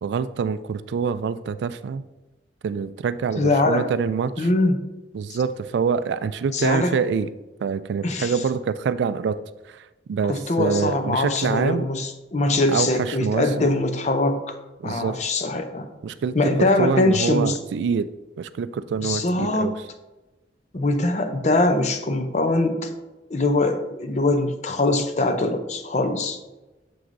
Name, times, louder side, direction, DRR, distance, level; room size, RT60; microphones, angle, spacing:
voice 1, 0.0-2.0 2.6-4.5 5.1-7.3 7.6-9.4 9.7-11.9 12.7-13.7 14.8-15.2 16.0-18.1 18.4-19.9, right 6 dB, 70° right, 14 dB, 0.3 m, -25 dB
voice 2, 3.4-3.9 4.4-4.8 6.5-7.0 8.0-8.3 10.3-14.6 14.8-15.9 16.3-17.6 19.0-19.8 20.7-22.9 23.3-26.4, left 2 dB, 40° left, 7 dB, 0.6 m, -22 dB
6.9 x 6.1 x 2.6 m, 1.1 s
head